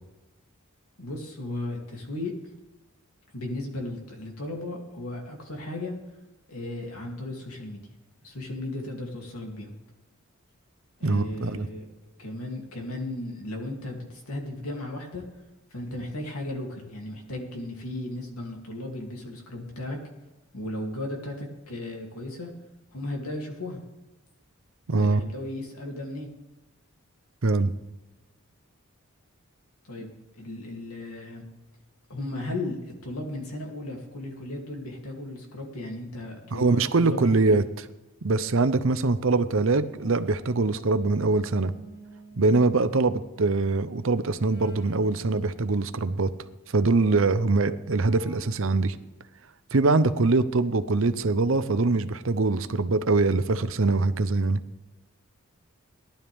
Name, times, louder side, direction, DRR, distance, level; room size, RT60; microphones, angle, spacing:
voice 1, 1.0-2.3 3.3-5.9 6.5-7.9 8.2-9.7 11.0-11.8 12.2-15.2 15.7-20.0 20.5-22.5 22.9-23.8 24.9-26.3 29.8-31.4 32.1-37.6, left 1 dB, 85° left, 1 dB, 3.0 m, -35 dB
voice 2, 11.0-11.7 24.9-25.2 27.4-27.7 36.5-37.6 38.2-41.7 42.4-46.3 46.7-49.0 49.7-54.6, right 3 dB, 60° right, 12 dB, 0.7 m, -23 dB
sound 1, 40.0-46.6 48.0-48.4, right 2 dB, 50° left, 5.4 m, -51 dB
18.5 x 11.5 x 3.6 m, 1.1 s
head